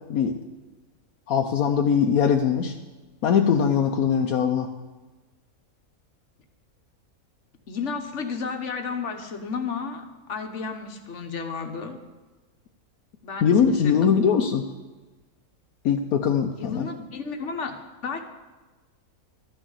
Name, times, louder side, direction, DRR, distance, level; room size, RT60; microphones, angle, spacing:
voice 1, 1.3-2.7 3.2-4.7 13.4-14.7 15.8-16.9, left 7 dB, 80° left, 3 dB, 1.2 m, -21 dB
voice 2, 7.7-12.0 13.2-14.2 16.5-18.3, left 5 dB, 55° left, 5 dB, 1.3 m, -33 dB
13.0 x 6.3 x 8.0 m, 1.2 s
omnidirectional pair, 1.5 m